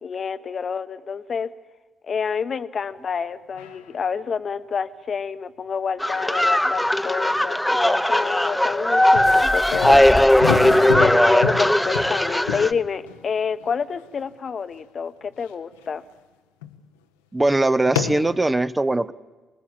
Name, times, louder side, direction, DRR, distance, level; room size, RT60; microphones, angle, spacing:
voice 1, 0.0-1.5 2.1-10.1 11.0-16.0, left 6 dB, 55° left, 12 dB, 0.9 m, -28 dB
sound 1, 3.5-3.9 9.1-14.0 14.7-14.8 15.5-15.9 16.6-16.8 17.9-18.4, left 8 dB, 90° left, 0.8 m, -29 dB
sound 2, 6.0-12.7, left 1 dB, 5° left, 0.9 m, -18 dB
sound 3, 9.2-11.0 11.9-12.0 12.5-12.6, left 3 dB, 30° left, 1.0 m, -33 dB
voice 2, 17.3-19.1, right 2 dB, 20° right, 14 dB, 0.8 m, -21 dB
24.5 x 19.5 x 7.6 m, 1.2 s
hypercardioid pair, 40°, 0 cm